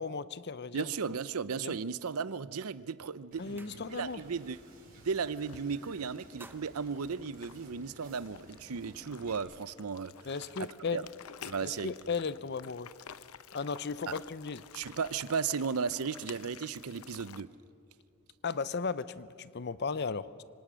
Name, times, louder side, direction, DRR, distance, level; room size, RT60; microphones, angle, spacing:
voice 1, 0.0-0.9 1.6-1.7 3.4-4.2 10.2-11.1 11.6-12.9 13.5-14.6 18.4-20.4, left 5 dB, 50° left, 16 dB, 0.7 m, -36 dB
voice 2, 0.7-4.6 5.0-10.1 10.6-11.0 11.5-11.9 14.1-14.2 14.7-17.5, right 5 dB, 85° right, 17 dB, 0.6 m, -35 dB
sound 1, 3.3-4.3 4.6-4.9 5.2-5.8 6.1-8.0, right 2 dB, 10° right, 0.8 m, -57 dB
Wind / Boat Water vehicle, 3.3-9.4, right 1 dB, 45° right, 5.9 m, -56 dB
sound 2, 5.4-17.4, left 8 dB, 80° left, 0.7 m, -51 dB
26.0 x 25.0 x 6.3 m, 2.4 s
head